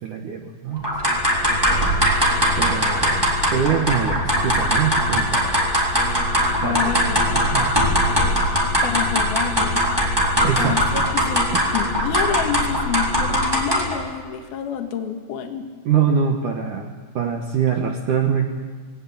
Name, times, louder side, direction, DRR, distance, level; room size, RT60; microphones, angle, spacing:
voice 1, 0.0-1.2 2.6-5.6 6.6-6.9 7.3-7.8 10.4-11.1 15.9-18.5, right 7 dB, 80° right, 3 dB, 1.8 m, -24 dB
sound 1, 0.8-14.0, equal, 5° right, 2.9 m, -20 dB
voice 2, 6.6-7.2 8.8-9.9 10.6-11.0 11.3-15.7, left 8 dB, 60° left, 4 dB, 3.2 m, -28 dB
20.5 x 18.5 x 8.7 m, 1.5 s
omnidirectional pair, 5.6 m